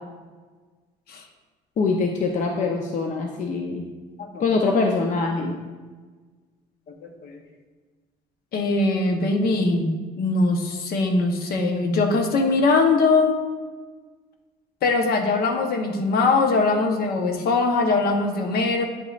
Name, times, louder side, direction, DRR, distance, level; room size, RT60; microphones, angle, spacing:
voice 1, 1.8-3.8 4.4-5.6, left 4 dB, 45° left, 2 dB, 0.7 m, -23 dB
voice 2, 8.5-13.3 14.8-18.9, left 3 dB, 65° left, 3 dB, 1.0 m, -21 dB
9.4 x 5.1 x 2.5 m, 1.4 s
cardioid pair, 110°, 17 cm